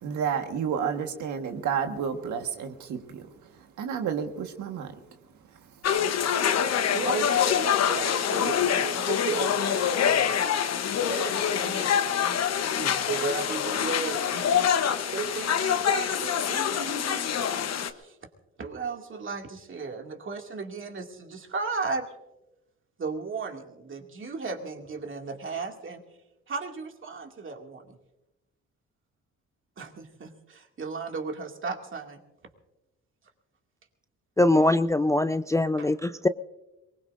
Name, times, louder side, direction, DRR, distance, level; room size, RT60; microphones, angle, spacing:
voice 1, 0.0-3.3 3.8-4.9, right 7 dB, 75° right, 5 dB, 1.5 m, -30 dB
sound 1, 5.8-17.9, left 8 dB, 60° left, 1.0 m, -25 dB
voice 2, 6.9-10.3 10.9-14.7 15.1-17.3 18.0-18.1 18.6-22.1 23.0-26.0 26.5-27.9 29.8-32.2 35.8-35.9, right 4 dB, 40° right, 3 dB, 2.3 m, -35 dB
voice 3, 34.4-36.3, left 2 dB, 10° left, 12 dB, 0.4 m, -22 dB
22.5 x 20.0 x 2.6 m, 0.97 s
cardioid pair, 90°, 30 cm